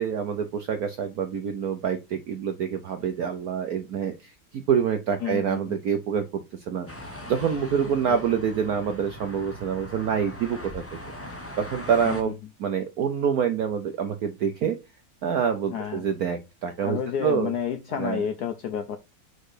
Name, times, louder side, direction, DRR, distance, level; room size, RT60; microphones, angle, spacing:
voice 1, 0.0-6.2 6.7-11.0 11.6-12.3 12.6-14.8 15.2-17.5 18.0-18.2, right 7 dB, 70° right, 7 dB, 0.8 m, -26 dB
voice 2, 5.2-5.8 7.8-8.4 12.0-12.3 15.7-16.1 16.8-19.0, left 8 dB, 70° left, 7 dB, 0.9 m, -31 dB
sound 1, 6.9-12.2, left 1 dB, 20° left, 0.3 m, -40 dB
4.9 x 4.4 x 4.9 m, 0.25 s
omnidirectional pair, 2.3 m